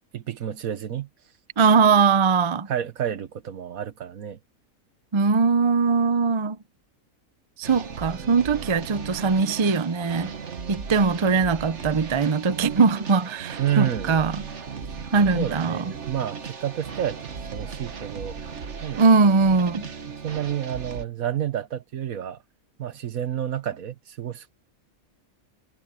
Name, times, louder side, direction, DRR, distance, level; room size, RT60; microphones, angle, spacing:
voice 1, 0.1-1.1 2.7-4.4 13.6-14.1 15.3-18.4 18.8-19.1 20.1-22.4 22.8-24.5, right 10 dB, 75° right, 1.5 m, -29 dB
voice 2, 1.6-2.7 5.1-6.6 7.6-10.3 10.7-14.3 15.1-15.8 19.0-19.9, right 4 dB, 35° right, 0.4 m, -21 dB
sound 1, 7.6-21.0, right 6 dB, 55° right, 1.5 m, -37 dB
omnidirectional pair, 1.5 m